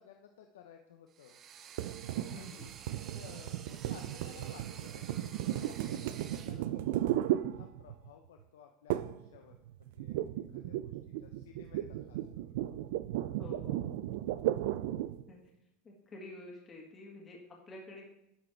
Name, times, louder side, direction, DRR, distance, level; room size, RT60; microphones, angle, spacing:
voice 1, 0.0-1.4 2.3-9.5 9.9-10.2 10.5-10.9 11.2-12.5, left 8 dB, 85° left, 4 dB, 0.6 m, -56 dB
sound 1, 1.1-6.6, right 8 dB, 40° right, 0.6 m, -51 dB
sound 2, 1.8-8.1 8.9-9.3 9.5-15.2, right 13 dB, 75° right, 0.4 m, -35 dB
voice 2, 2.3-2.7 13.4-13.9 15.3-15.4 15.8-18.0, left 2 dB, 25° left, -1 dB, 1.8 m, -49 dB
9.9 x 4.0 x 4.4 m, 0.83 s
supercardioid pair, 110°, 0 cm